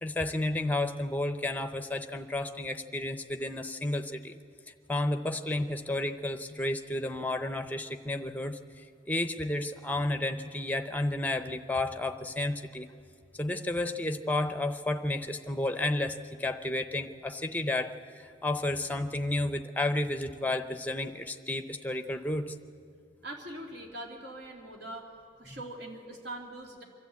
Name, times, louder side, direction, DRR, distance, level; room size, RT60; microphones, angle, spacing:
voice 1, 0.0-4.4 4.9-12.9 13.3-22.5 25.5-25.6, left 1 dB, 10° left, 8 dB, 0.7 m, -32 dB
voice 2, 23.2-25.1 25.4-26.8, right 1 dB, 65° right, 0 dB, 3.0 m, -42 dB
24.5 x 13.0 x 8.5 m, 2.3 s
head